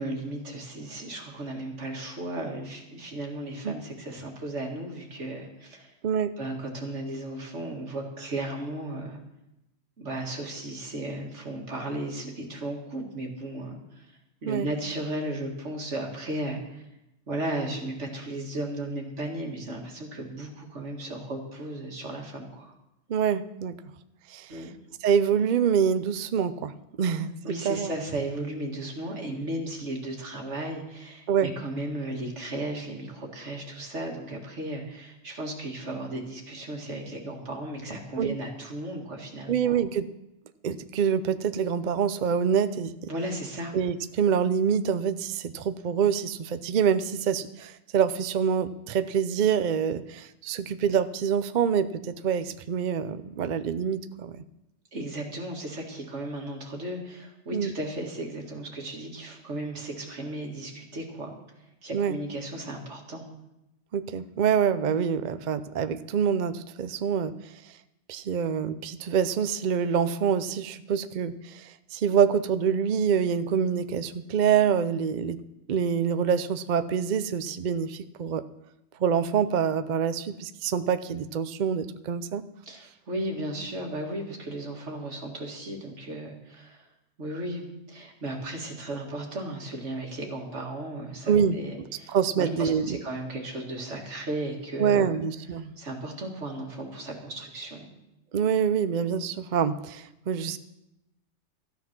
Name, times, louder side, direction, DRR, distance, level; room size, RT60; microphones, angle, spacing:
voice 1, 0.0-5.9 6.4-9.2 10.0-14.1 14.4-16.8 17.3-22.7 24.5-24.7 27.4-39.8 43.1-43.7 54.9-61.3 61.8-63.2 82.6-86.9 87.2-95.2 95.8-97.9, right 1 dB, 85° right, 1 dB, 2.4 m, -35 dB
voice 2, 6.0-6.3 14.5-14.7 23.1-23.8 24.3-24.6 25.0-26.7 27.0-27.3 27.6-27.9 31.3-31.5 38.2-38.4 39.5-40.1 40.6-42.9 43.7-54.4 57.5-57.7 61.9-62.2 63.9-67.3 68.1-75.4 75.7-78.4 79.0-82.5 91.3-91.6 92.1-93.0 94.8-95.7 98.3-100.6, right 7 dB, 50° right, 12 dB, 0.6 m, -26 dB
14.0 x 9.6 x 6.0 m, 0.89 s
omnidirectional pair, 1.2 m